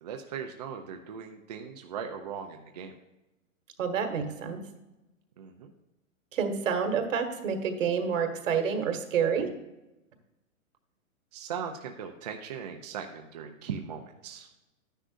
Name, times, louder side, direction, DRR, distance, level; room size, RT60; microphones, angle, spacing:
voice 1, 0.0-2.9 5.4-5.7 11.3-14.5, right 7 dB, 30° right, 4 dB, 0.5 m, -39 dB
voice 2, 3.8-4.6 6.3-9.5, right 6 dB, 65° right, 5 dB, 1.7 m, -28 dB
11.5 x 10.0 x 2.6 m, 0.99 s
hypercardioid pair, 160°, 41 cm